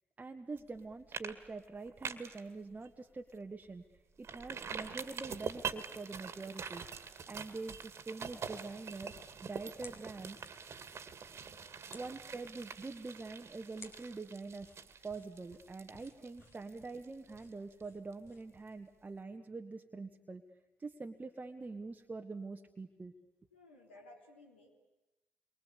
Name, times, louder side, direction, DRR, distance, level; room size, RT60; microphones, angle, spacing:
voice 1, 0.2-3.8 4.2-6.8 7.3-9.1 9.4-10.4 11.9-14.7 15.0-20.4 20.8-23.1, right 3 dB, 30° right, 4 dB, 1.5 m, -45 dB
sound 1, 0.6-0.8 1.1-1.3 1.6-2.4 2.8-2.9 3.3-3.4 4.2-17.8 18.1-18.2, right 6 dB, 50° right, 2.2 m, -45 dB
sound 2, 9.7-18.7, left 3 dB, 45° left, 3.7 m, -61 dB
voice 2, 11.4-11.7 15.0-15.1 23.5-24.7, left 2 dB, 85° left, 0 dB, 3.7 m, -58 dB
29.0 x 24.0 x 8.4 m, 1.0 s
figure-of-eight pair, 40°, 6 cm